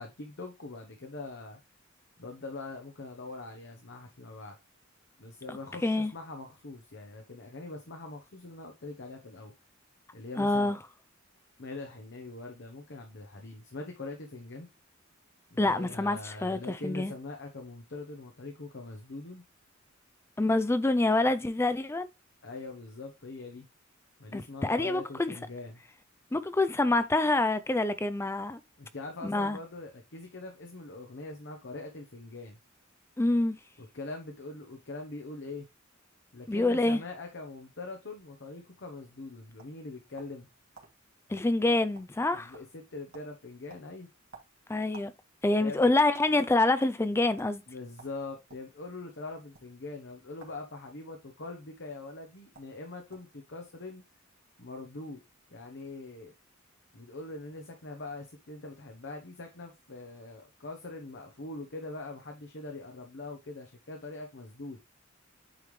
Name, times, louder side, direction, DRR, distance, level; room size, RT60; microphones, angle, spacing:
voice 1, 0.0-1.6 2.2-4.6 5.2-9.5 10.1-10.7 11.6-14.7 15.5-19.4 22.4-23.7 24.2-25.8 28.8-32.6 33.8-35.7 36.3-40.5 42.3-44.1 45.6-45.9 47.7-54.0 54.6-55.2 55.5-56.3 56.9-64.8, left 2 dB, 60° left, 1.0 m, -43 dB
voice 2, 10.4-10.8 15.6-17.1 20.4-22.1 24.3-25.4 26.3-28.6 29.2-29.6 33.2-33.6 36.5-37.0 41.3-42.5 44.7-45.1 45.4-47.6, left 2 dB, 10° left, 0.4 m, -26 dB
sound 1, 39.6-40.4 40.7-40.9 41.3-41.5 41.8-42.3 42.5-42.8 43.1-43.3 43.7-45.1 45.4-46.3 46.8-46.9 47.4-47.5 48.0-48.7 49.4-49.6 50.3-50.6 50.9-51.5 52.2-52.3 52.5-52.7 53.1-53.4, right 4 dB, 85° right, 1.9 m, -53 dB
8.9 x 3.5 x 3.2 m
head